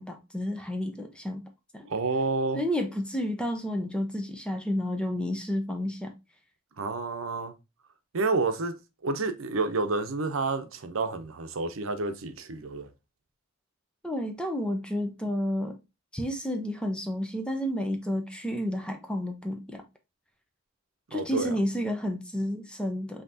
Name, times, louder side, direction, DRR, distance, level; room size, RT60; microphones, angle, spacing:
voice 1, 0.0-1.4 1.7-1.9 2.6-6.1 14.0-15.8 16.1-19.8 21.1-23.2, equal, 5° left, 0.6 m, -31 dB
voice 2, 1.9-2.6 6.8-7.5 8.1-8.7 9.0-12.9 21.1-21.6, right 3 dB, 85° right, 0.7 m, -29 dB
5.7 x 2.9 x 2.7 m
head